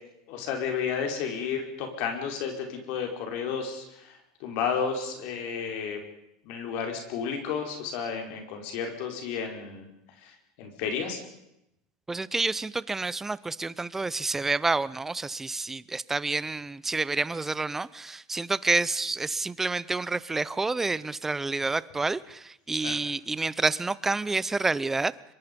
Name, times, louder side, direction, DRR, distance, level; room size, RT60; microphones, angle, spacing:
voice 1, 0.3-6.0 6.4-9.9 10.2-10.3 10.6-11.2 22.8-23.0, left 6 dB, 60° left, 3 dB, 4.6 m, -32 dB
voice 2, 12.1-25.1, right 3 dB, 10° right, 19 dB, 0.7 m, -29 dB
24.5 x 22.5 x 5.3 m, 0.82 s
supercardioid pair, 130°, 3 cm